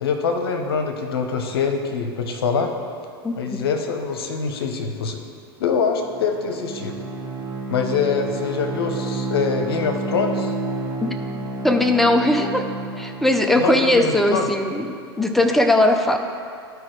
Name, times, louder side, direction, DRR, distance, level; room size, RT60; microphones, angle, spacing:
voice 1, 0.0-2.7 3.4-5.2 5.6-7.0 7.7-10.5 13.6-14.5, left 5 dB, 65° left, 5 dB, 0.9 m, -24 dB
voice 2, 3.2-3.6 11.0-11.1 11.6-12.7 13.0-16.2, left 1 dB, ahead, 4 dB, 0.6 m, -19 dB
Bowed string instrument, 6.0-13.7, right 2 dB, 30° right, 1.2 m, -30 dB
12.0 x 4.7 x 3.3 m, 2.2 s
figure-of-eight pair, 90°, 13 cm